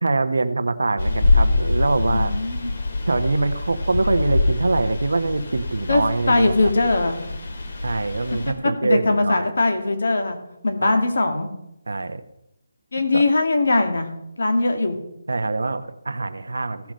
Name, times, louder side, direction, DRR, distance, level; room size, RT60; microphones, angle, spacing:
voice 1, 0.0-2.4 3.1-6.7 7.8-9.5 10.8-11.0 11.9-12.2 13.1-13.2 15.3-16.9, right 3 dB, 85° right, 10 dB, 1.1 m, -24 dB
sound 1, 1.0-8.5, left 3 dB, 50° left, 2.0 m, -24 dB
voice 2, 2.1-2.7 5.9-7.2 8.6-10.4 10.6-11.5 12.9-14.1 14.4-15.0, left 2 dB, 65° left, 5 dB, 2.2 m, -20 dB
15.5 x 6.0 x 5.2 m, 0.86 s
hypercardioid pair, 170°, 0 cm